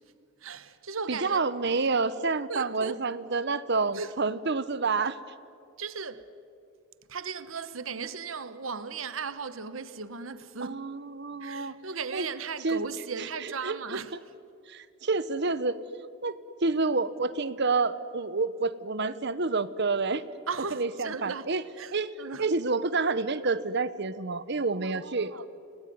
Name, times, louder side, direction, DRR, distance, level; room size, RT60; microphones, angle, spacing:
voice 1, 0.4-1.5 2.5-3.0 3.9-4.1 5.8-6.3 7.1-10.8 11.4-14.2 20.5-21.5 21.8-22.5 24.7-25.5, right 5 dB, 90° right, 1.2 m, -37 dB
voice 2, 1.1-5.2 10.6-11.7 12.1-12.3 12.6-12.8 13.6-14.0 14.7-15.8 16.2-16.3 16.6-20.2 20.7-21.6 21.9-22.1 22.4-25.5, right 3 dB, 60° right, 1.1 m, -28 dB
30.0 x 20.0 x 9.4 m
head